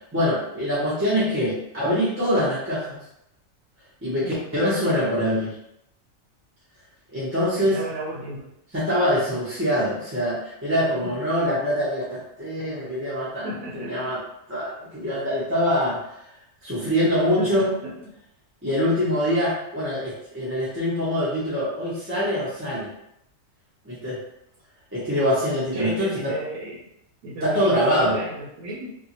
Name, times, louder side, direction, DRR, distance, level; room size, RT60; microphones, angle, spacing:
voice 1, 0.1-3.0 4.0-5.5 7.1-7.8 8.7-13.5 13.8-14.2 14.5-16.0 16.6-17.7 18.6-22.9 23.8-24.2 24.9-26.3 27.4-28.2, equal, 15° right, -10 dB, 0.6 m, -24 dB
voice 2, 7.6-8.5 11.0-11.1 13.4-14.1 16.8-16.9 17.4-17.9 25.7-26.8 27.2-28.9, right 1 dB, 85° right, -3 dB, 1.1 m, -34 dB
2.6 x 2.4 x 2.8 m, 0.79 s
omnidirectional pair, 1.4 m